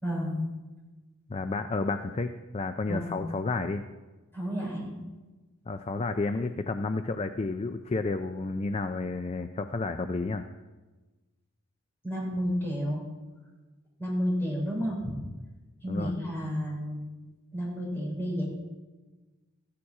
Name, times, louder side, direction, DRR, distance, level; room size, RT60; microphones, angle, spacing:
voice 1, 0.0-0.4 2.9-3.1 4.3-4.9 12.0-13.0 14.0-15.1 15.8-17.0 17.5-18.5, equal, 10° left, -5 dB, 4.3 m, -31 dB
voice 2, 1.3-3.8 5.7-10.5 15.9-16.1, left 3 dB, 30° left, 8 dB, 0.4 m, -31 dB
14.5 x 8.7 x 4.9 m, 1.2 s
head